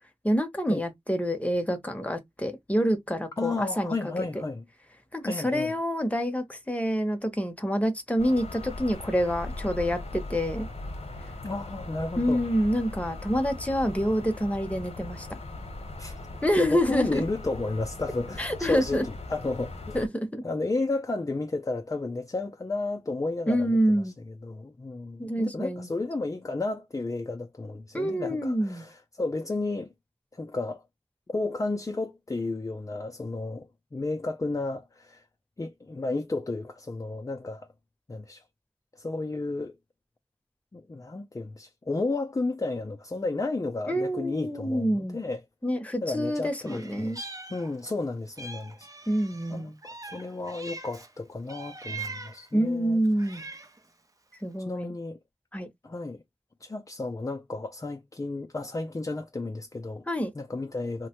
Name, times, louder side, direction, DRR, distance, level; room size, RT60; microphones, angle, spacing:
voice 1, 0.2-4.2 5.1-10.7 12.2-15.3 16.4-17.2 18.4-19.0 19.9-20.4 23.5-24.1 25.2-25.9 27.9-28.8 43.9-45.2 45.6-47.2 49.1-49.8 52.5-53.4 54.4-54.9 55.5-55.7 60.1-60.3, equal, 10° left, 0.8 m, -27 dB
voice 2, 3.4-4.6 5.2-5.7 11.4-12.4 16.0-16.1 16.6-20.0 20.4-29.9 30.3-30.8 31.3-35.2 35.6-37.7 38.1-38.4 38.9-39.7 40.7-45.4 46.0-48.9 49.5-53.0 53.3-53.4 54.6-55.2 55.8-56.2 56.6-60.0 60.4-61.1, left 3 dB, 30° left, 0.4 m, -32 dB
sound 1, 8.2-20.1, left 2 dB, 70° left, 0.8 m, -39 dB
Meow, 46.6-48.0 48.4-51.1 51.5-52.5 53.0-53.9, right 3 dB, 30° right, 0.5 m, -42 dB
3.0 x 2.1 x 2.9 m
wide cardioid pair, 60°, 11 cm